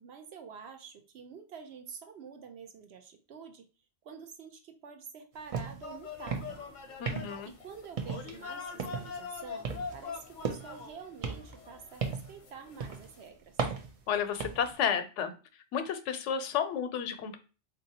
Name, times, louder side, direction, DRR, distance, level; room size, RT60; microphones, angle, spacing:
voice 1, 0.0-3.6 4.0-6.6 7.4-13.6, right 6 dB, 65° right, 5 dB, 0.9 m, -48 dB
sound 1, 5.5-5.9 6.2-6.6 7.1-7.5 8.0-8.4 8.8-9.2 9.6-10.8 11.2-12.4 12.8-13.1 13.6-14.7, right 5 dB, 50° right, 0.4 m, -36 dB
sound 2, 5.8-13.3, left 5 dB, 50° left, 0.6 m, -44 dB
voice 2, 7.0-7.5 14.1-15.3 15.7-17.4, left 8 dB, 85° left, 9 dB, 0.9 m, -31 dB
3.9 x 2.7 x 2.8 m, 0.34 s
omnidirectional pair, 1.2 m